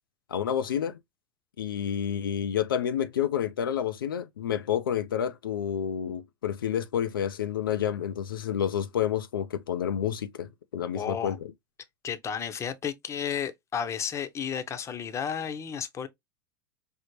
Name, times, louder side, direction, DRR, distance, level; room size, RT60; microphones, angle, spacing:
voice 1, 0.3-1.0 1.6-11.4, left 9 dB, 80° left, 0.4 m, -29 dB
voice 2, 10.9-11.3 12.0-16.1, left 7 dB, 25° left, 0.7 m, -32 dB
5.2 x 2.0 x 3.0 m
hypercardioid pair, 90°, 11 cm